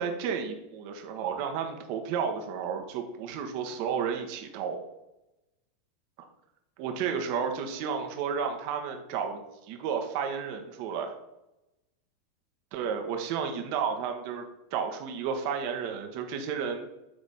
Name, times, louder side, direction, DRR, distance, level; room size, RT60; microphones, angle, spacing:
voice 1, 0.0-4.8 6.8-11.1 12.7-14.4 14.7-16.8, right 6 dB, 55° right, 4 dB, 1.4 m, -32 dB
8.1 x 3.9 x 5.7 m, 0.91 s
hypercardioid pair, 95°, 0 cm